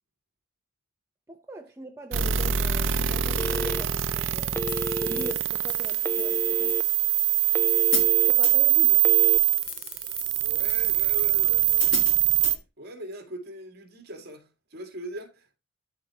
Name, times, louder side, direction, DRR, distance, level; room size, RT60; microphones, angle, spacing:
voice 1, 1.3-4.7 5.0-6.8 8.3-9.0, equal, 15° right, 0.7 m, -41 dB
sound 1, 2.1-12.6, right 12 dB, 65° right, 0.6 m, -23 dB
Telephone, 3.4-4.1 4.5-5.3 6.0-6.8 7.2-8.3 9.0-9.4, equal, 10° left, 0.3 m, -31 dB
Hi-hat, 4.7-12.6, left 6 dB, 65° left, 2.4 m, -37 dB
voice 2, 10.4-12.0 12.4-15.6, right 1 dB, 50° right, 2.3 m, -41 dB
13.0 x 4.8 x 2.9 m
head